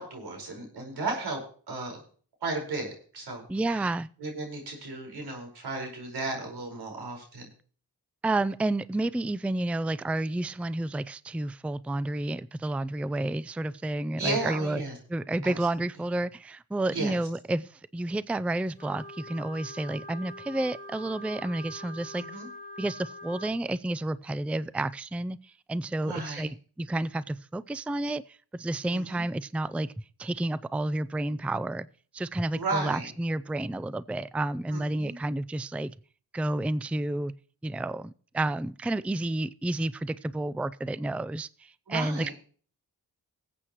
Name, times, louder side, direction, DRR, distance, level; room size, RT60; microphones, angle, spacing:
voice 1, 0.0-1.4 1.7-2.0 2.4-3.4 3.7-3.9 4.2-7.5 14.2-14.9 15.4-15.5 16.9-17.2 22.1-22.5 26.0-26.5 28.9-29.2 32.5-33.1 34.7-35.2 41.9-42.4, right 2 dB, 85° right, 5.1 m, -34 dB
voice 2, 3.5-4.1 8.2-14.8 15.1-22.2 22.8-29.9 30.2-31.9 32.1-35.9 36.3-37.3 37.6-42.3, right 2 dB, 5° right, 0.4 m, -30 dB
Wind instrument woodwind instrument, 18.7-23.6, equal, 25° left, 4.0 m, -44 dB
20.0 x 8.2 x 3.1 m
cardioid pair, 45°, 39 cm